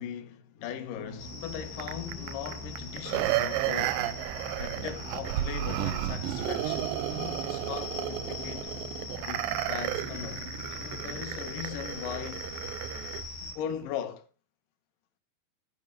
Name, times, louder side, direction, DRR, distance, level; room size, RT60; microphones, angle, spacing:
voice 1, 0.0-4.1 4.6-8.7 9.2-10.5 10.8-12.5 13.4-14.3, left 9 dB, 65° left, 2.6 m, -39 dB
sound 1, 0.9-11.2, left 2 dB, 50° left, 1.1 m, -46 dB
sound 2, 1.2-13.5, left 2 dB, 85° left, 4.4 m, -41 dB
sound 3, 1.8-13.3 13.7-13.8, right 14 dB, 80° right, 2.1 m, -33 dB
15.5 x 5.3 x 6.6 m
omnidirectional pair, 4.4 m